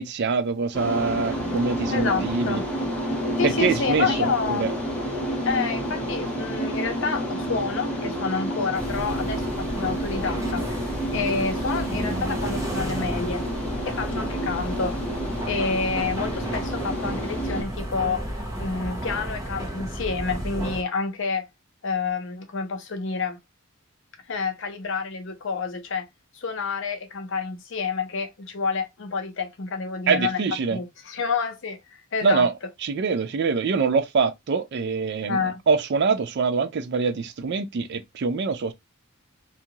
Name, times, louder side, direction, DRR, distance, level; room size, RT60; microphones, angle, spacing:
voice 1, 0.0-2.6 3.4-4.7 30.1-30.8 32.2-32.5 32.8-38.7, right 5 dB, 55° right, 0.4 m, -24 dB
sound 1, 0.7-17.6, equal, 5° left, 1.2 m, -29 dB
voice 2, 1.9-2.7 3.4-4.7 5.4-13.4 13.8-15.0 15.5-18.3 18.6-21.5 21.8-23.4 24.3-26.1 26.3-30.4 30.7-31.8 32.1-32.5 35.2-35.6, left 4 dB, 60° left, 0.6 m, -28 dB
sound 2, 8.7-20.8, right 1 dB, 15° right, 0.8 m, -33 dB
2.8 x 2.3 x 2.7 m
head